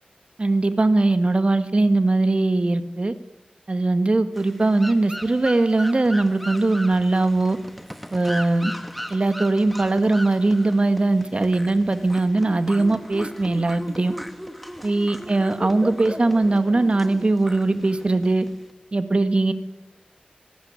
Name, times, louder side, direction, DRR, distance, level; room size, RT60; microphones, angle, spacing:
voice 1, 0.4-3.1 3.7-7.6 8.1-8.7 9.1-14.1 14.8-18.5 18.9-19.5, right 2 dB, 40° right, 10 dB, 1.9 m, -20 dB
sound 1, 4.4-18.7, equal, ahead, 1.8 m, -37 dB
26.5 x 19.0 x 9.7 m, 0.94 s
wide cardioid pair, 85°, 3 cm